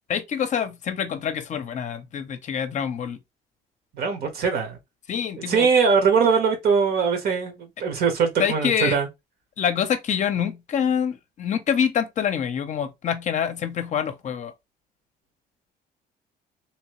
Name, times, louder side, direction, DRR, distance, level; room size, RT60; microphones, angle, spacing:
voice 1, 0.1-3.2 5.1-5.7 8.4-9.0 9.6-14.5, left 8 dB, 45° left, 0.6 m, -26 dB
voice 2, 3.9-4.8 5.5-9.1, right 5 dB, 65° right, 1.1 m, -21 dB
3.0 x 2.7 x 3.0 m
cardioid pair, 110°, 17 cm